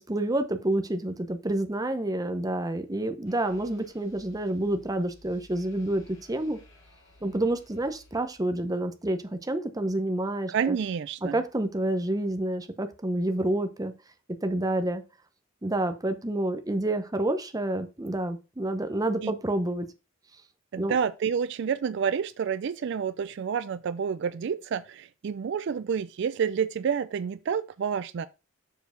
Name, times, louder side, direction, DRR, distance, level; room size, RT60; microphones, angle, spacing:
voice 1, 0.0-6.0 6.3-6.6 7.2-10.8 11.3-13.9 14.4-15.0 15.6-19.9 20.8-21.0, right 1 dB, 20° right, 0.7 m, -28 dB
sound 1, 3.3-8.8, left 2 dB, 65° left, 2.7 m, -56 dB
voice 2, 10.5-11.4 19.2-19.3 20.7-28.3, right 7 dB, 60° right, 0.3 m, -29 dB
7.1 x 4.5 x 5.1 m
head